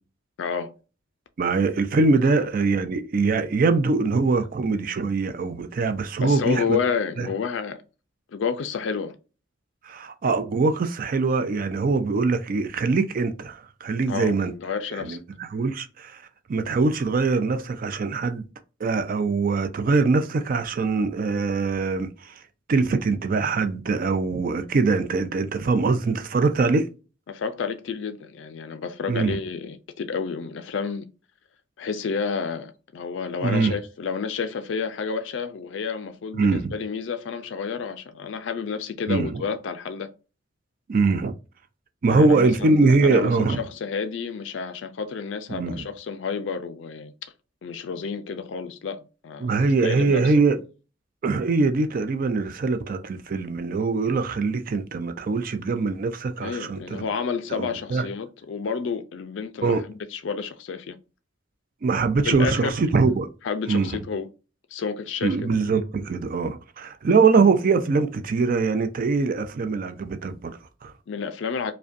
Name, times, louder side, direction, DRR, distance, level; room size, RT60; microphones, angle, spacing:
voice 1, 0.4-0.7 6.2-7.8 8.3-9.2 14.1-15.2 27.3-31.1 31.8-40.1 42.1-47.1 47.6-50.3 56.4-61.0 62.2-62.8 63.4-64.3 64.7-65.4 71.1-71.7, left 5 dB, 65° left, 0.4 m, -30 dB
voice 2, 1.4-6.8 7.2-7.3 9.8-14.5 15.0-16.2 16.5-18.4 18.8-22.4 22.7-26.9 29.1-29.4 33.4-33.7 36.4-36.7 39.1-39.4 40.9-41.3 42.0-43.6 45.5-45.9 49.4-50.6 51.2-57.1 57.5-58.0 59.6-59.8 61.8-63.3 63.7-63.9 65.2-70.9, right 4 dB, 45° right, 0.4 m, -23 dB
5.0 x 2.2 x 2.5 m
head